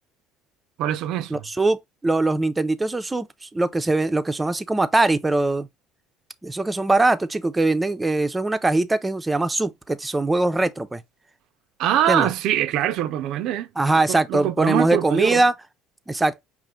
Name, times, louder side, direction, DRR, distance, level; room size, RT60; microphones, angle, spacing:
voice 1, 0.8-1.4 11.8-13.7 14.1-15.4, right 11 dB, 70° right, 0.4 m, -23 dB
voice 2, 1.3-5.7 6.4-11.0 12.1-12.3 13.8-15.5 16.1-16.4, right 2 dB, 15° right, 0.5 m, -22 dB
5.4 x 2.5 x 3.6 m
supercardioid pair, 105°, 0 cm